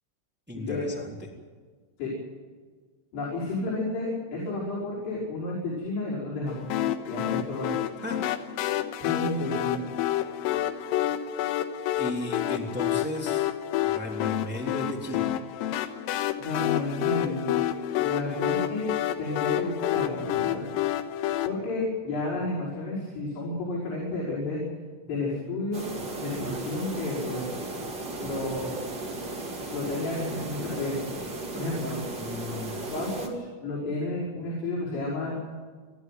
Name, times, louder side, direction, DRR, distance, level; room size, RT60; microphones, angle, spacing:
voice 1, 0.5-1.3 8.0-8.2 12.0-13.5 13.8-15.3 32.2-32.8, left 1 dB, 5° right, -1 dB, 2.3 m, -35 dB
voice 2, 3.1-6.7 7.1-7.8 9.0-9.8 16.4-17.6 18.0-18.9 19.2-20.6 21.5-24.6 25.0-25.9 26.2-27.5 28.2-28.8 29.7-31.1 31.5-32.0 32.9-35.4, left 2 dB, 70° left, -5 dB, 8.3 m, -31 dB
sound 1, 6.7-21.5, left 12 dB, 90° left, 3.8 m, -29 dB
sound 2, 25.7-33.3, right 2 dB, 25° right, 2.5 m, -36 dB
28.5 x 11.5 x 9.4 m, 1.5 s
omnidirectional pair, 5.9 m